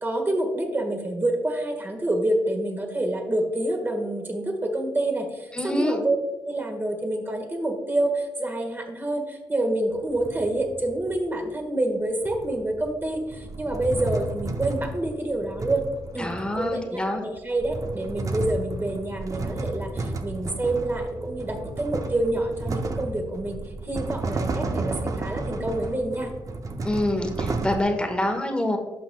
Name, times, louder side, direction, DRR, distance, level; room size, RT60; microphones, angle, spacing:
voice 1, 0.0-6.2 6.4-15.8 16.1-16.3 16.6-26.3, right 1 dB, 25° right, 3 dB, 1.5 m, -27 dB
voice 2, 5.5-6.0 16.2-17.2 26.8-28.8, left 1 dB, 10° left, 4 dB, 1.2 m, -26 dB
sound 1, 9.9-11.3 12.2-16.8 17.4-27.8, right 3 dB, 40° right, 0.7 m, -32 dB
11.0 x 5.9 x 2.3 m, 1.1 s
cardioid pair, 70°, 9 cm